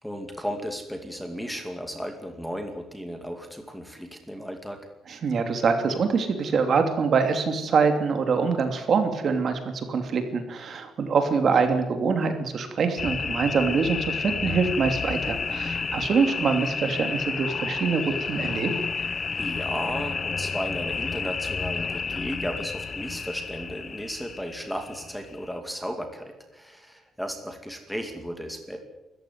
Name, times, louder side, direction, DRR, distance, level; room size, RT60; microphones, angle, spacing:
voice 1, 0.0-4.8 19.4-28.8, equal, ahead, 5 dB, 2.4 m, -35 dB
voice 2, 5.1-18.0 18.3-18.7, right 5 dB, 45° right, 7 dB, 2.9 m, -24 dB
sound 1, 13.0-25.6, left 5 dB, 30° left, 0.8 m, -31 dB
25.5 x 14.5 x 9.5 m, 0.95 s
cardioid pair, 175°, 0 cm